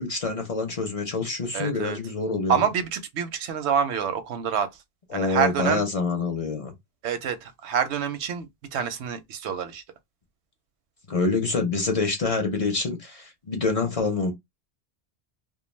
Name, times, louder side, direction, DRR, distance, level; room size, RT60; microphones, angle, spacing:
voice 1, 0.0-2.6 5.1-6.7 11.1-14.3, left 3 dB, 40° left, 0.6 m, -26 dB
voice 2, 1.5-2.0 2.5-4.7 5.1-5.8 7.0-9.8, right 7 dB, 85° right, 0.9 m, -27 dB
2.3 x 2.2 x 3.1 m
omnidirectional pair, 1.1 m